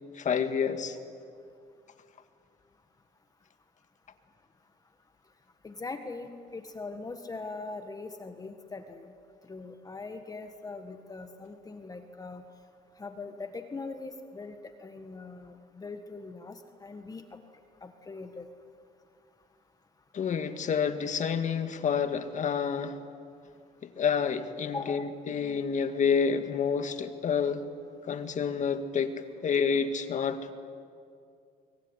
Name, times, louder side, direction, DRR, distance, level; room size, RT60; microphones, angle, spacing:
voice 1, 0.1-1.0 20.1-23.0 23.8-27.6 28.0-30.5, left 6 dB, 45° left, 8 dB, 1.9 m, -29 dB
voice 2, 5.6-9.1 9.5-12.4 13.0-17.2 17.8-18.4 24.7-25.1, left 3 dB, 20° left, 7 dB, 1.5 m, -41 dB
24.5 x 24.0 x 9.8 m, 2.4 s
cardioid pair, 110°, 17 cm